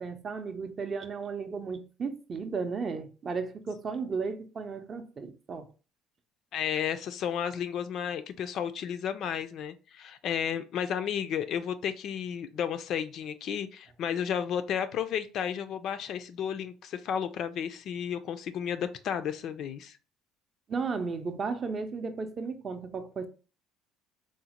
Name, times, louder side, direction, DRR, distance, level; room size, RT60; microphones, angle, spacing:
voice 1, 0.0-5.7 20.7-23.3, right 5 dB, 35° right, 0.4 m, -34 dB
voice 2, 6.5-20.0, left 8 dB, 55° left, 0.3 m, -32 dB
3.9 x 2.0 x 2.8 m
cardioid pair, 115°, 0 cm